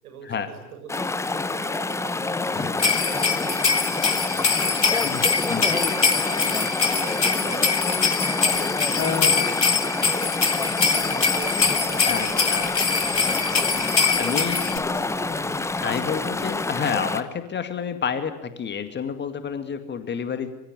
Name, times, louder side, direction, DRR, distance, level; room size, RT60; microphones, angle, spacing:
voice 1, 0.0-5.0 5.4-10.3 10.6-13.8 14.1-14.6 14.9-15.4, right 6 dB, 60° right, 5 dB, 7.6 m, -42 dB
Chatter / Stream, 0.9-17.2, left 3 dB, 5° left, 1.0 m, -27 dB
voice 2, 2.5-2.9 3.3-3.4 4.9-5.6 9.0-9.4 11.6-11.8 12.1-12.7 14.2-14.6 15.8-20.5, left 7 dB, 20° left, 9 dB, 2.2 m, -29 dB
sound 1, 2.8-14.8, left 5 dB, 80° left, 2.2 m, -23 dB
sound 2, 10.5-17.1, left 6 dB, 55° left, 6.3 m, -49 dB
25.5 x 24.0 x 9.7 m, 0.85 s
figure-of-eight pair, 85°, 49 cm